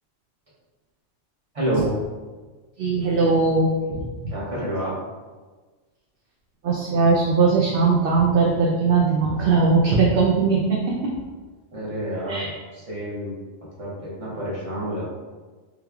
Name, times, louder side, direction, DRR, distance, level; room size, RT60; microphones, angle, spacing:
voice 1, 1.5-1.9 4.3-4.9 11.7-13.3 13.8-15.1, right 1 dB, 30° right, -8 dB, 1.1 m, -28 dB
voice 2, 2.8-4.0 6.6-10.6 12.3-12.5, right 4 dB, 60° right, -3 dB, 0.6 m, -19 dB
3.6 x 3.1 x 2.3 m, 1.3 s
omnidirectional pair, 1.2 m